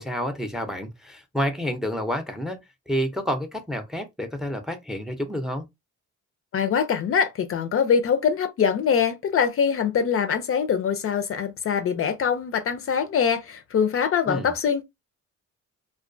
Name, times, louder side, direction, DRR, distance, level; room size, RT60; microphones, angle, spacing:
voice 1, 0.0-2.6 2.9-5.7 14.3-14.5, equal, ahead, 0.5 m, -29 dB
voice 2, 6.5-14.8, left 7 dB, 45° left, 0.5 m, -23 dB
2.2 x 2.2 x 2.5 m
cardioid pair, 90°, 30 cm